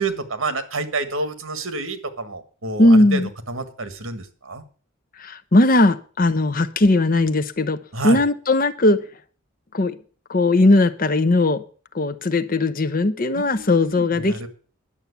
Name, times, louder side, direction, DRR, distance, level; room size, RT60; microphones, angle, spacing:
voice 1, 0.0-4.6 7.9-8.2 13.3-14.5, right 3 dB, 75° right, 11 dB, 1.7 m, -29 dB
voice 2, 2.8-3.3 5.2-7.8 8.0-9.1 9.7-10.0 10.3-11.6 11.9-14.5, left 2 dB, 40° left, 13 dB, 0.8 m, -18 dB
11.0 x 7.4 x 8.2 m, 0.40 s
head